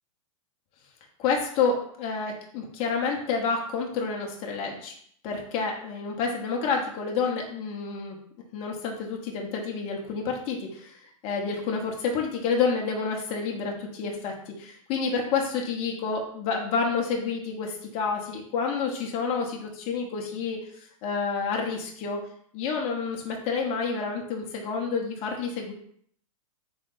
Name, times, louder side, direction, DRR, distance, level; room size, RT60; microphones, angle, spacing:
voice 1, 1.2-4.9 5.2-8.2 8.5-11.0 11.2-20.6 21.0-22.2 22.5-25.7, left 5 dB, 35° left, 1 dB, 0.9 m, -29 dB
3.7 x 3.4 x 4.0 m, 0.62 s
hypercardioid pair, 140°, 18 cm